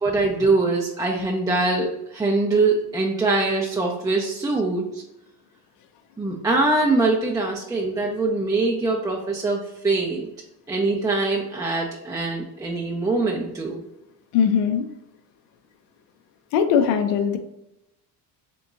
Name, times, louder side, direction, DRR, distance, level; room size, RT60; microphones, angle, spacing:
voice 1, 0.0-5.0 6.2-10.3 10.7-13.8, right 3 dB, 10° right, -2 dB, 0.4 m, -23 dB
voice 2, 14.3-14.8 16.5-17.4, left 7 dB, 85° left, 7 dB, 0.7 m, -20 dB
3.4 x 3.0 x 3.7 m, 0.86 s
cardioid pair, 120°, 41 cm